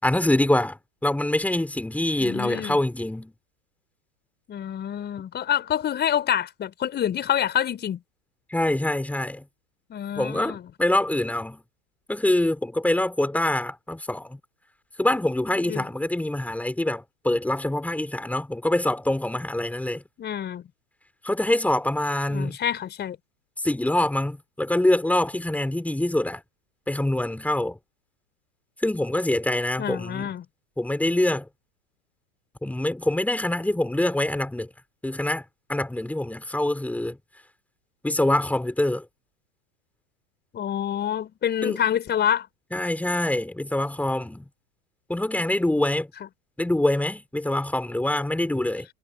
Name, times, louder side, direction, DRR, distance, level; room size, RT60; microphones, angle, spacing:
voice 1, 0.0-3.3 8.5-9.4 10.1-11.6 12.1-14.4 15.0-20.0 21.2-22.6 23.6-26.4 26.9-27.8 28.8-30.3 30.8-31.5 32.6-34.7 35.0-35.4 35.7-37.2 38.0-39.0 41.6-41.8 42.7-44.5 45.1-46.1 46.6-48.9, left 1 dB, 5° left, 5.2 m, -25 dB
voice 2, 2.2-2.8 4.5-8.0 9.9-10.6 15.6-15.8 20.2-20.6 22.3-23.2 29.8-30.4 40.5-42.5, left 9 dB, 25° left, 4.8 m, -27 dB
figure-of-eight pair, 95°, 43 cm